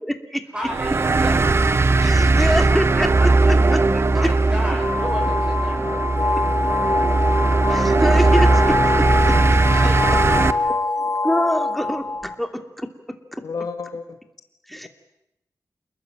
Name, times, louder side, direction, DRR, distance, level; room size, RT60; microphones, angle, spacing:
voice 1, 0.0-0.4 2.0-4.3 7.7-9.1 9.7-9.8 10.7-12.9 13.3-13.4 14.7-14.9, equal, ahead, 6 dB, 2.8 m, -26 dB
voice 2, 0.5-1.4 4.1-5.9 9.8-10.5, equal, 15° right, 1 dB, 7.3 m, -32 dB
sound 1, 0.7-10.5, right 3 dB, 40° right, 1.2 m, -18 dB
sound 2, 4.8-12.3, left 3 dB, 40° left, 2.1 m, -24 dB
voice 3, 5.8-6.6 13.4-14.2, left 5 dB, 65° left, 7 dB, 2.0 m, -34 dB
29.0 x 21.0 x 9.0 m, 0.85 s
wide cardioid pair, 110°, 7 cm